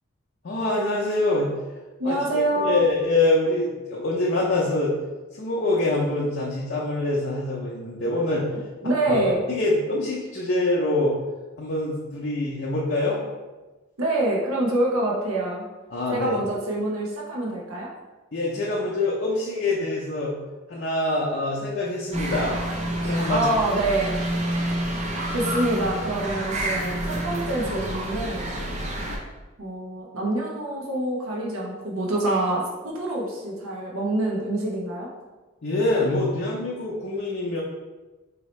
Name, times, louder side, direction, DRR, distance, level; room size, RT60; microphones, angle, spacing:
voice 1, 0.4-1.5 2.0-4.9 5.3-8.6 9.1-11.1 11.6-13.2 15.9-16.4 18.3-20.3 20.7-22.6 23.0-23.5 35.6-37.6, left 2 dB, 50° left, -5 dB, 0.5 m, -25 dB
voice 2, 2.0-2.8 8.8-9.4 14.0-15.6 16.1-17.9 23.3-24.1 25.3-28.5 29.6-35.1, right 2 dB, 80° right, -3 dB, 0.8 m, -26 dB
sound 1, 22.1-29.2, right 1 dB, 30° right, 0.4 m, -28 dB
4.2 x 2.7 x 3.1 m, 1.2 s
head